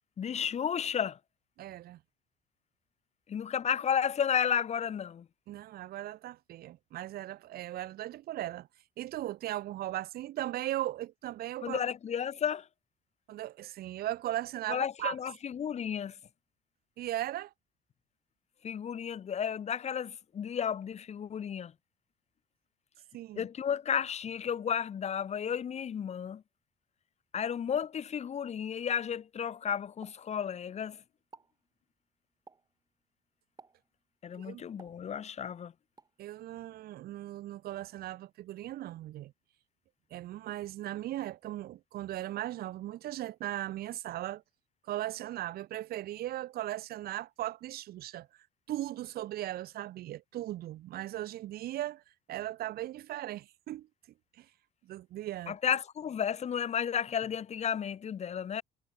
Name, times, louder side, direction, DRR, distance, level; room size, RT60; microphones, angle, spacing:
voice 1, 0.2-1.2 3.3-5.3 11.6-12.7 14.7-16.2 18.6-21.7 23.4-26.4 27.3-31.0 34.2-35.7 55.5-58.6, left 8 dB, 40° left, 1.3 m, -33 dB
voice 2, 1.6-2.0 5.5-8.7 9.0-11.9 13.3-15.2 17.0-17.5 23.1-23.5 34.3-34.6 36.2-39.3 40.1-44.4 44.9-48.3 48.7-52.0 52.3-53.9 54.4-54.5 54.9-55.6, right 14 dB, 65° right, 0.8 m, -38 dB
Explosion, 30.0-30.9 31.2-31.6 32.5-32.8 33.6-34.0 34.8-35.5 36.0-36.2, right 4 dB, 25° right, 2.9 m, -56 dB
cardioid pair, 110°, 17 cm